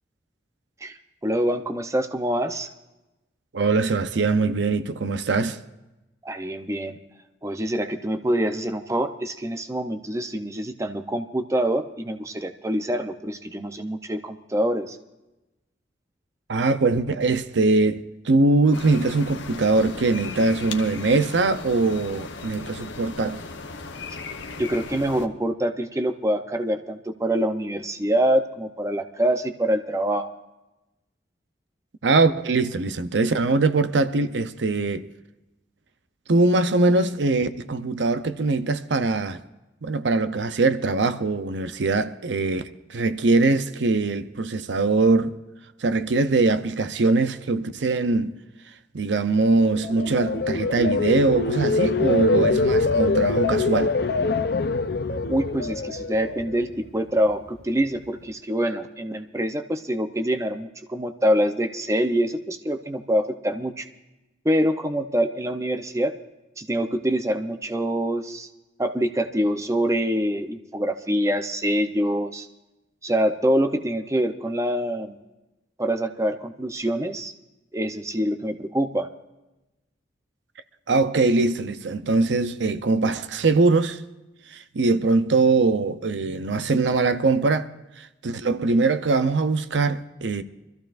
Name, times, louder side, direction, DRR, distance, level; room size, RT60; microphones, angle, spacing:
voice 1, 1.2-2.7 6.2-7.0 7.4-15.0 24.6-30.3 55.3-63.9 64.4-66.1 66.6-68.5 68.8-72.5 73.0-75.2 75.8-77.3 77.7-79.1, equal, 15° right, 0.7 m, -25 dB
voice 2, 3.5-5.6 16.5-23.4 32.0-35.1 36.3-39.4 39.8-45.3 45.8-48.3 48.9-53.9 80.9-84.0 84.5-87.7 88.0-90.4, right 3 dB, 80° right, 0.7 m, -22 dB
sound 1, 18.7-25.3, left 4 dB, 85° left, 1.0 m, -37 dB
sound 2, 49.6-56.8 57.2-57.6, left 3 dB, 60° left, 0.6 m, -24 dB
24.0 x 14.5 x 2.5 m
head